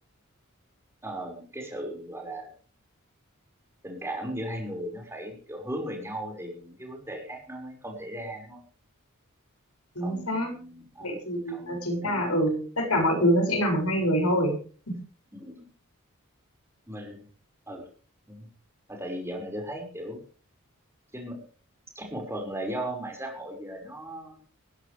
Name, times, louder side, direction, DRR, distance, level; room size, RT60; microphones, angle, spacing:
voice 1, 1.0-2.5 3.8-8.6 10.0-11.2 11.5-12.3 15.3-15.7 16.9-17.2 17.7-17.8 18.3-18.5 18.9-20.2 21.1-21.4 22.0-24.4, right 1 dB, 10° right, 1 dB, 5.6 m, -37 dB
voice 2, 9.9-10.5 11.0-14.6, equal, 85° left, 4 dB, 6.6 m, -25 dB
20.0 x 16.0 x 3.5 m, 0.41 s
head